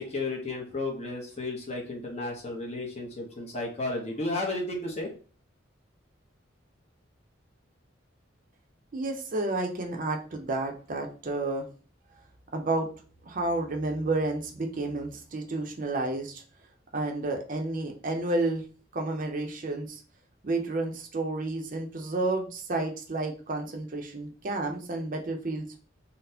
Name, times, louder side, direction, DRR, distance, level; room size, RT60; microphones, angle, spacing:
voice 1, 0.0-5.1, left 2 dB, 35° left, 0 dB, 0.8 m, -33 dB
voice 2, 8.9-11.7 12.5-12.9 13.2-16.4 16.9-18.6 18.9-20.0 20.4-25.8, right 2 dB, 45° right, 2 dB, 0.6 m, -31 dB
4.0 x 2.1 x 2.7 m, 0.38 s
head